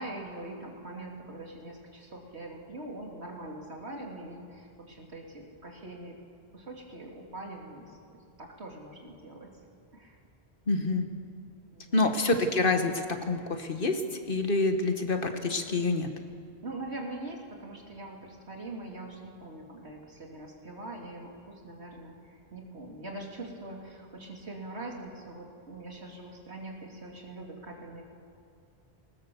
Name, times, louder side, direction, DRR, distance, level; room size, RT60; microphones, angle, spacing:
voice 1, 0.0-6.2 6.5-9.6 9.9-10.2 11.7-12.1 16.6-28.0, right 2 dB, 80° right, 0 dB, 3.1 m, -43 dB
voice 2, 10.7-11.1 11.9-12.9 13.3-16.1, left 3 dB, 55° left, 6 dB, 1.6 m, -27 dB
20.5 x 19.5 x 7.0 m, 2.3 s
omnidirectional pair, 1.1 m